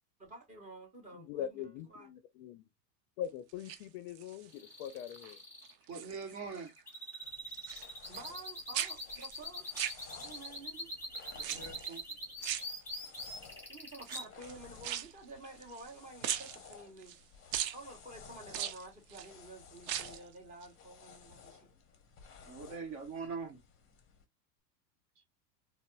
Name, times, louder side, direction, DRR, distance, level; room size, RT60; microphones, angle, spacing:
voice 1, 0.2-2.1 8.1-9.7 10.1-10.9 13.7-17.1 17.5-21.7, right 2 dB, 15° right, 1.2 m, -51 dB
voice 2, 1.1-2.6 3.2-5.4, left 10 dB, 50° left, 0.5 m, -42 dB
sound 1, 3.5-4.5 4.9-5.3 5.6-6.7 6.9-8.5 8.7-10.5 11.4-12.0 12.4-13.3 14.0-15.9 16.2-17.2 17.5-17.8 18.5-19.3 19.8-20.3 20.6-20.7, right 11 dB, 75° right, 0.7 m, -40 dB
sound 2, 4.5-14.2, equal, 5° left, 1.5 m, -44 dB
voice 3, 5.9-6.7 11.3-12.0 22.5-23.6, right 5 dB, 35° right, 1.0 m, -42 dB
sound 3, 7.2-24.2, left 6 dB, 25° left, 0.8 m, -56 dB
4.0 x 2.0 x 2.2 m
supercardioid pair, 130°, 50 cm